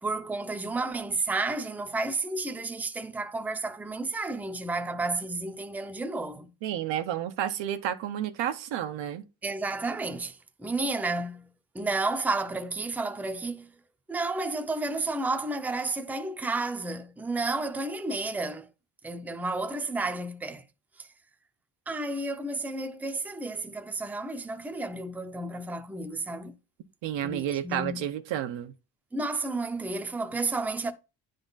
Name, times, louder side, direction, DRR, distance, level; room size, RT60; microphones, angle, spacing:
voice 1, 0.0-6.5 9.4-11.5 11.7-13.7 14.1-18.7 19.0-20.6 21.0-21.1 21.9-26.5 27.2-28.1 29.1-30.9, right 2 dB, 5° right, 0.5 m, -31 dB
voice 2, 6.6-9.2 27.0-28.7, right 11 dB, 90° right, 0.9 m, -31 dB
9.9 x 3.9 x 3.9 m
cardioid pair, 130°, 43 cm